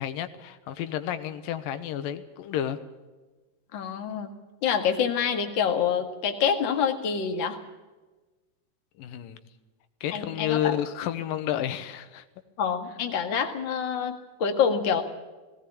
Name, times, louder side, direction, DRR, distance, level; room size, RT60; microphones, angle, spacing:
voice 1, 0.0-2.8 9.0-9.4 10.0-12.3, left 11 dB, 90° left, 10 dB, 2.8 m, -31 dB
voice 2, 3.7-4.3 4.6-7.6 10.1-10.7 12.6-15.0, left 7 dB, 40° left, 5 dB, 2.1 m, -26 dB
18.5 x 18.0 x 8.5 m, 1.2 s
omnidirectional pair, 3.9 m